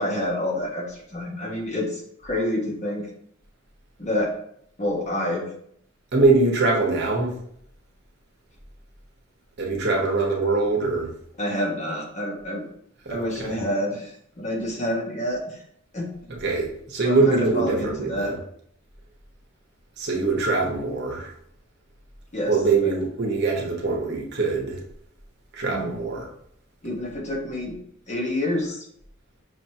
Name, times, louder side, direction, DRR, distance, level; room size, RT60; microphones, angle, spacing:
voice 1, 0.0-3.1 4.0-4.3 4.8-5.5 11.4-12.6 13.1-15.6 15.9-16.1 17.0-18.3 22.3-22.5 22.8-22.9 25.7-25.9 26.8-27.8 28.1-28.8, left 1 dB, 35° left, -2 dB, 1.1 m, -28 dB
voice 2, 6.1-7.3 9.6-11.1 13.0-13.6 16.4-18.4 20.0-21.3 22.5-24.8 25.5-26.3, right 3 dB, 55° right, -1 dB, 1.1 m, -23 dB
6.1 x 3.0 x 2.8 m, 0.68 s
head